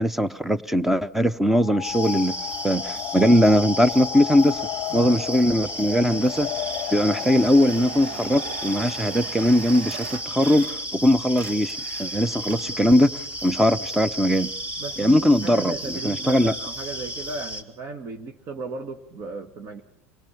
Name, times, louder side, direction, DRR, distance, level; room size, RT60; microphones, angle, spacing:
voice 1, 0.0-2.3 2.6-4.6 4.9-6.5 6.9-14.5 15.0-16.5, equal, 5° right, 17 dB, 0.9 m, -20 dB
sound 1, 1.5-9.2, left 16 dB, 40° left, 0.8 m, -34 dB
sound 2, 1.8-17.6, right 1 dB, 20° right, 3.5 m, -34 dB
sound 3, 6.1-11.0 11.3-12.8, right 10 dB, 70° right, 0.9 m, -40 dB
voice 2, 14.8-19.8, right 3 dB, 40° right, 5 dB, 1.7 m, -35 dB
26.0 x 18.0 x 7.1 m, 0.75 s
supercardioid pair, 110°, 7 cm